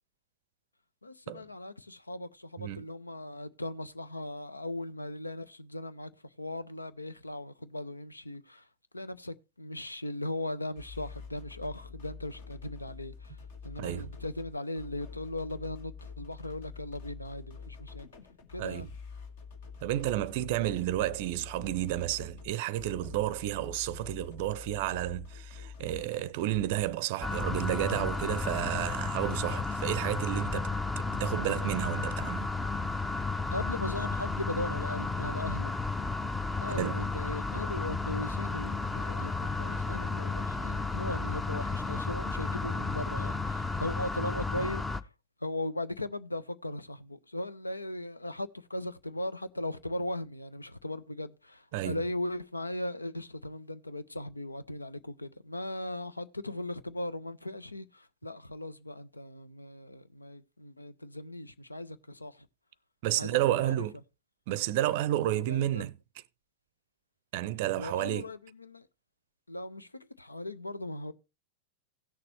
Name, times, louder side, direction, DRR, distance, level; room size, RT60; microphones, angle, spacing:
voice 1, 1.0-6.1 6.4-8.7 8.9-13.4 13.6-18.1 18.5-18.9 20.6-20.8 33.5-35.8 36.6-45.1 45.4-62.5 63.2-63.9 65.5-65.9 67.8-68.9 69.5-71.1, left 1 dB, 80° left, 0.6 m, -38 dB
sound 1, 10.8-26.9, left 5 dB, 55° left, 1.7 m, -47 dB
voice 2, 13.8-14.1 18.6-18.9 19.8-30.7 31.0-32.5 36.8-37.0 51.7-52.0 63.0-64.0 64.5-65.9 67.3-68.3, right 14 dB, 50° right, 0.5 m, -31 dB
sound 2, 27.2-45.0, left 3 dB, 10° left, 0.6 m, -33 dB
17.0 x 6.7 x 3.1 m
figure-of-eight pair, 90°, 0 cm